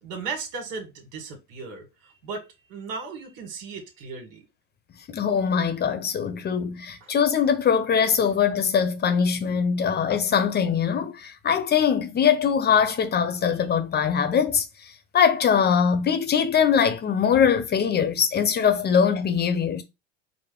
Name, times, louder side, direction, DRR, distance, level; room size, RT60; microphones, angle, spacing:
voice 1, 0.0-4.4 7.0-7.1, right 4 dB, 70° right, 1.8 m, -36 dB
voice 2, 5.1-14.6 15.1-19.8, left 7 dB, 35° left, 0.9 m, -22 dB
4.8 x 2.1 x 3.7 m
supercardioid pair, 95°, 30 cm